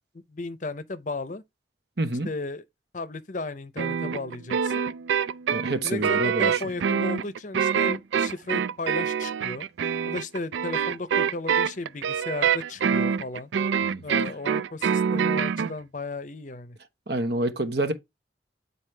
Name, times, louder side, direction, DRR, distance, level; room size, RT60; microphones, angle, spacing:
voice 1, 0.3-1.4 2.2-2.6 2.9-4.9 5.8-9.7 10.1-13.5 14.0-16.8, left 2 dB, 45° left, 0.6 m, -34 dB
voice 2, 2.0-2.3 5.5-6.6 13.8-14.0 17.1-17.9, right 2 dB, 60° right, 1.1 m, -27 dB
sound 1, 3.8-15.7, right 7 dB, 85° right, 0.4 m, -25 dB
9.2 x 4.1 x 3.3 m
head